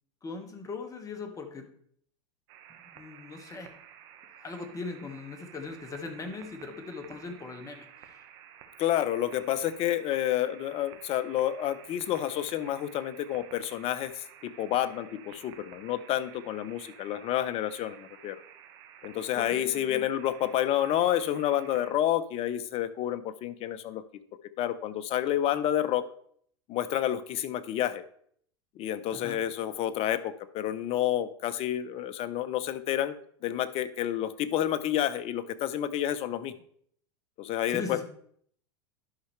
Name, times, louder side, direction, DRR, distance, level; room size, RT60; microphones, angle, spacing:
voice 1, 0.2-1.7 2.7-3.7 4.4-8.2 19.3-20.0 29.1-29.4 37.7-38.0, left 3 dB, 25° left, 5 dB, 1.5 m, -40 dB
sound 1, 2.5-21.9, right 9 dB, 60° right, 1.3 m, -52 dB
voice 2, 8.8-18.4 19.0-24.0 24.6-26.0 26.7-28.0 28.8-33.1 33.4-36.5 37.4-38.0, left 12 dB, 45° left, 14 dB, 0.7 m, -29 dB
11.5 x 5.7 x 3.3 m, 0.62 s
hypercardioid pair, 105°, 15 cm